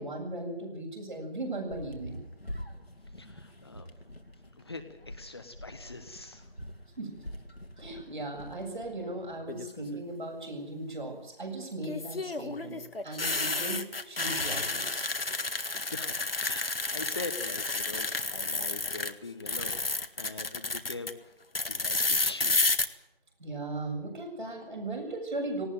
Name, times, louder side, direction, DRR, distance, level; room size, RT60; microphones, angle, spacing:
voice 1, 0.0-2.2 7.0-7.1 7.8-15.1 23.4-25.7, right 2 dB, 50° right, 2 dB, 7.8 m, -37 dB
sound 1, 1.7-9.4, left 1 dB, 85° left, 2.7 m, -47 dB
voice 2, 3.1-3.9 4.6-6.5 15.7-22.7, left 3 dB, 25° left, 7 dB, 1.1 m, -43 dB
sound 2, 9.5-10.0 11.8-19.1 19.4-21.1 21.5-22.8, left 3 dB, 70° left, 1.8 m, -31 dB
18.5 x 18.0 x 9.3 m, 0.90 s
figure-of-eight pair, 160°, 30 cm